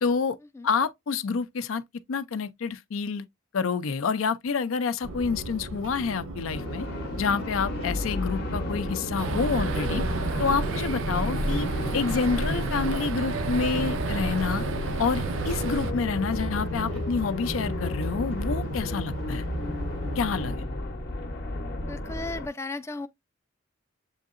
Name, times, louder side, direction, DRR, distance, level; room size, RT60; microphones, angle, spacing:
voice 1, 0.0-0.4 0.6-1.8 2.1-3.2 3.5-6.9 7.2-10.1 10.4-11.7 11.9-14.6 15.0-19.4 20.2-20.6, left 5 dB, 75° left, 0.5 m, -28 dB
sound 1, 5.0-20.5, equal, 85° right, 1.1 m, -37 dB
sound 2, 6.5-22.5, left 1 dB, 50° left, 0.8 m, -32 dB
sound 3, 9.2-15.9, right 4 dB, 65° right, 0.4 m, -32 dB
voice 2, 21.8-23.1, left 2 dB, 15° left, 0.3 m, -35 dB
7.0 x 2.7 x 2.4 m
head